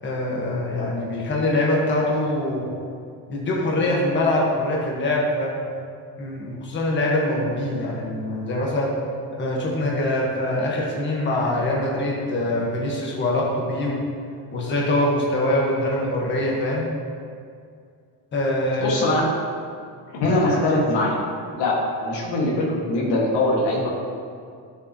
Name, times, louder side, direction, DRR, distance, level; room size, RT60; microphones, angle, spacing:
voice 1, 0.0-2.7 3.3-5.7 6.2-8.9 9.4-14.0 14.5-16.9 18.3-19.0, left 1 dB, 30° left, -3 dB, 1.3 m, -23 dB
voice 2, 18.8-19.2 20.1-21.2 21.6-23.9, left 2 dB, 85° left, -3 dB, 1.9 m, -22 dB
11.5 x 7.0 x 3.0 m, 2.3 s
cardioid pair, 170°, 40 cm